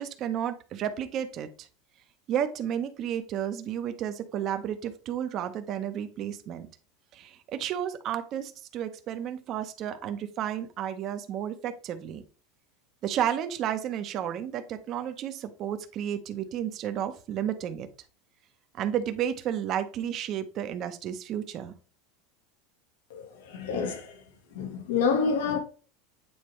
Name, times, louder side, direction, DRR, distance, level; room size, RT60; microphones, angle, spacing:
voice 1, 0.0-1.5 2.3-6.7 7.1-12.2 13.0-17.9 18.8-21.7, right 10 dB, 35° right, 0.9 m, -32 dB
voice 2, 23.1-24.1 24.5-25.6, left 5 dB, 80° left, 1.4 m, -28 dB
8.8 x 4.2 x 3.2 m
supercardioid pair, 160°, 0 cm